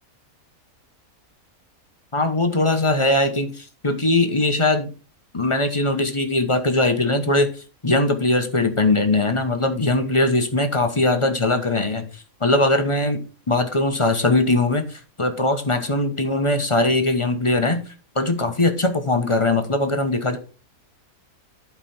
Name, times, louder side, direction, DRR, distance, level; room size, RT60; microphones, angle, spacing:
voice 1, 2.1-4.9 5.3-13.2 13.5-17.8 18.1-20.4, left 2 dB, 25° left, 6 dB, 0.9 m, -21 dB
11.5 x 4.8 x 4.3 m, 0.35 s
omnidirectional pair, 1.6 m